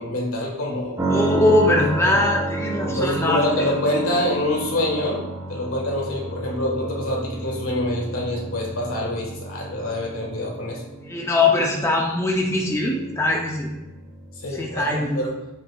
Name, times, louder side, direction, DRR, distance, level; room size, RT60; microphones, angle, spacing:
voice 1, 0.0-1.0 2.0-2.1 2.8-5.2 5.5-10.8 14.4-15.4, left 1 dB, 75° left, -2 dB, 1.6 m, -26 dB
voice 2, 1.0-3.7 11.1-13.7 14.5-15.2, left 2 dB, 15° left, -1 dB, 0.5 m, -21 dB
sound 1, 1.0-14.8, right 2 dB, 15° right, 0.8 m, -31 dB
6.9 x 5.9 x 2.3 m, 1.0 s
head